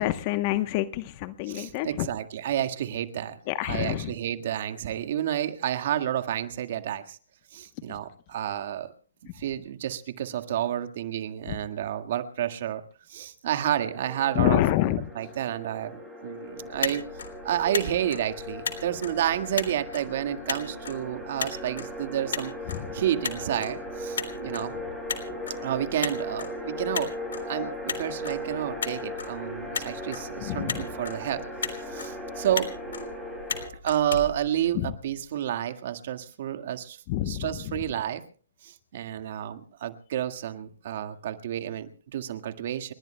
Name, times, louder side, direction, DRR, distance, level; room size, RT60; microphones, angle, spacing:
voice 1, 0.0-2.1 3.5-4.1 14.4-15.0 30.4-30.8 34.8-34.9 37.1-37.5, left 15 dB, 35° left, 11 dB, 0.9 m, -26 dB
voice 2, 1.5-7.2 7.5-8.9 9.3-12.8 13.1-14.6 15.1-17.1 17.4-22.5 22.9-24.8 25.6-27.1 27.5-32.7 33.7-38.2 38.6-42.9, right 11 dB, 55° right, 8 dB, 1.7 m, -30 dB
sound 1, 13.7-33.7, left 1 dB, 5° right, 7.7 m, -38 dB
Motor vehicle (road), 16.6-35.2, left 6 dB, 75° left, 3.5 m, -37 dB
30.0 x 20.0 x 2.2 m, 0.42 s
hypercardioid pair, 140°, 0 cm